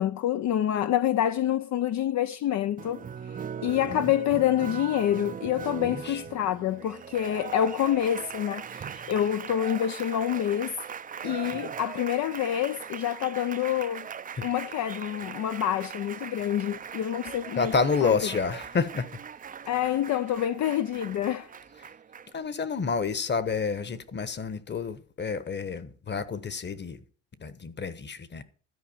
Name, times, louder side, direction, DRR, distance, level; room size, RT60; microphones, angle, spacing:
voice 1, 0.0-3.1 3.6-10.8 11.2-14.1 14.4-17.7 18.0-18.1 19.7-21.5, left 11 dB, 65° left, 0.6 m, -27 dB
Applause, 2.8-22.4, right 7 dB, 30° right, 0.4 m, -40 dB
voice 2, 5.8-6.2 14.4-14.5 17.6-19.1 22.3-27.0 27.4-28.4, left 5 dB, 35° left, 1.2 m, -29 dB
13.0 x 4.9 x 8.7 m
cardioid pair, 90°, 30 cm